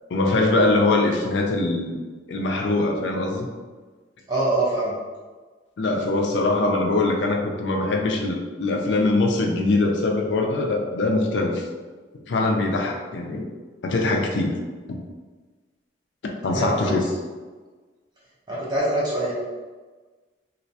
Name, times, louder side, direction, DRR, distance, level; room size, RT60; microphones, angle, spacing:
voice 1, 0.1-2.0 2.3-3.5 5.8-11.6 12.3-13.5 13.8-14.5 14.9-15.0 16.4-17.0, left 2 dB, 70° left, 1 dB, 0.4 m, -22 dB
voice 2, 4.3-5.0 16.5-17.0 18.5-19.3, right 1 dB, 25° right, -7 dB, 0.7 m, -24 dB
2.4 x 2.1 x 2.6 m, 1.4 s
head